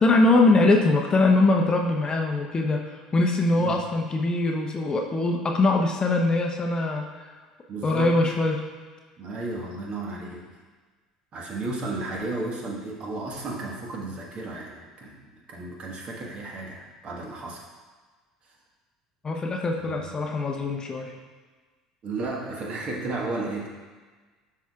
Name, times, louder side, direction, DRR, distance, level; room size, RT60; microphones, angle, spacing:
voice 1, 0.0-7.0 7.8-8.6 19.2-21.1, left 2 dB, 25° left, 2 dB, 0.8 m, -22 dB
voice 2, 3.5-3.8 7.7-8.2 9.2-10.5 11.3-17.6 19.8-20.1 22.0-23.7, right 2 dB, 40° right, -1 dB, 1.5 m, -33 dB
11.5 x 4.7 x 2.4 m, 1.4 s
figure-of-eight pair, 65°, 3 cm